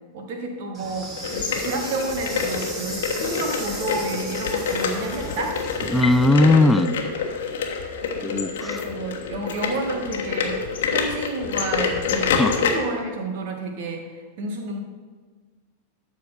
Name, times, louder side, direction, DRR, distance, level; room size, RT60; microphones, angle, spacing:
voice 1, 0.1-5.5 8.2-10.6 10.9-14.8, right 2 dB, 50° right, 3 dB, 1.6 m, -31 dB
Insect, 0.7-6.3, right 2 dB, 25° right, 2.5 m, -36 dB
sound 1, 1.2-12.7, left 6 dB, 60° left, 1.3 m, -27 dB
voice 2, 5.9-6.9 8.2-8.8 12.4-12.6, left 2 dB, 5° left, 11 dB, 0.4 m, -18 dB
12.5 x 4.3 x 6.4 m, 1.5 s
figure-of-eight pair, 90°, 0 cm